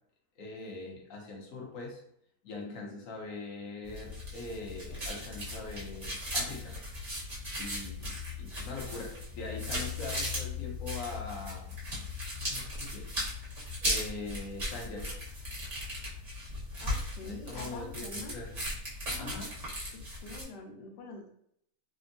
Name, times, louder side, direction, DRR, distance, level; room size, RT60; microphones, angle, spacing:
voice 1, 0.4-2.0 2.4-6.8 7.6-11.8 12.3-13.1 13.8-15.1 17.2-18.6 19.2-19.5, left 3 dB, 60° left, -1 dB, 1.0 m, -42 dB
voice 2, 2.6-3.0 16.8-18.4 19.1-19.4 19.9-21.3, left 2 dB, 80° left, 2 dB, 1.2 m, -46 dB
sound 1, 3.8-20.4, left 1 dB, 30° right, 0.8 m, -37 dB
3.4 x 2.0 x 2.5 m, 0.70 s
omnidirectional pair, 1.9 m